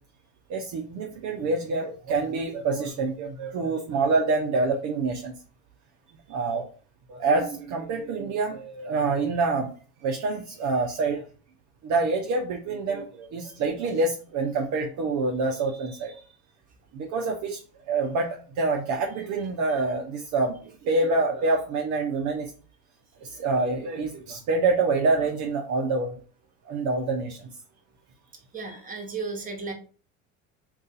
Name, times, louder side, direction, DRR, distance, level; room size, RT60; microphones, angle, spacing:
voice 1, 0.5-5.4 6.3-6.6 7.1-9.7 10.0-11.2 11.8-16.2 16.9-17.6 17.9-20.6 20.8-22.5 23.2-26.2 26.7-27.5, right 3 dB, 45° right, 1 dB, 0.6 m, -26 dB
voice 2, 28.5-29.7, right 4 dB, 20° right, 2 dB, 1.0 m, -34 dB
2.6 x 2.4 x 3.8 m, 0.40 s
hypercardioid pair, 80°, 40 cm